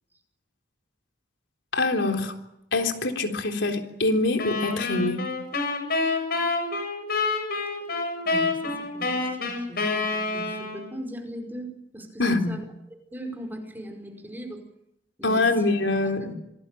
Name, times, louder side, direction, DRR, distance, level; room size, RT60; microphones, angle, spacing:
voice 1, 1.7-2.3 2.7-5.2 12.2-12.5 15.2-16.3, left 2 dB, 85° left, 3 dB, 3.7 m, -24 dB
sound 1, 4.4-11.0, left 3 dB, 55° left, 7.6 m, -28 dB
voice 2, 8.2-14.6 15.2-15.7 16.0-16.1, right 1 dB, 10° right, 4 dB, 5.1 m, -39 dB
26.5 x 19.0 x 9.2 m, 0.83 s
head